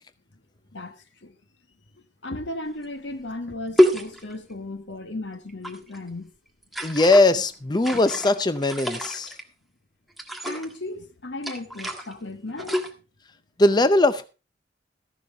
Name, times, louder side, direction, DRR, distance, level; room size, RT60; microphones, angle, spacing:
voice 1, 0.7-1.4 2.2-6.3 10.4-12.9, left 2 dB, 85° left, 1.5 m, -35 dB
sound 1, 2.8-2.9 3.8-4.5 5.5-6.0 6.6-7.3 7.8-9.4 10.2-10.8 11.4-12.1 12.5-12.9, equal, ahead, 1.5 m, -26 dB
voice 2, 6.8-9.3 13.6-14.3, left 2 dB, 25° left, 0.5 m, -20 dB
14.0 x 11.0 x 3.5 m
head